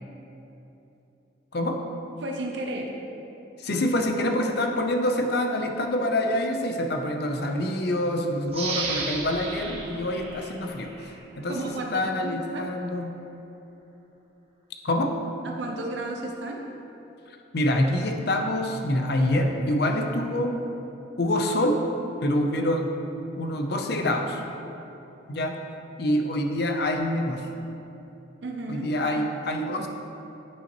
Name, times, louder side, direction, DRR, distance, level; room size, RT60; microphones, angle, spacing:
voice 1, 2.2-3.0 11.5-12.7 15.4-16.7 28.4-28.9, right 2 dB, 65° right, 1 dB, 0.6 m, -33 dB
voice 2, 3.6-10.9 11.4-13.1 14.8-15.1 17.5-20.6 21.2-21.9 22.2-22.9 23.4-24.4 25.3-25.6 26.0-27.5 28.7-29.9, left 1 dB, 55° left, 4 dB, 0.6 m, -26 dB
sound 1, 8.5-11.2 11.7-11.8, right 4 dB, 30° right, 0.9 m, -34 dB
9.3 x 5.6 x 3.0 m, 3.0 s
head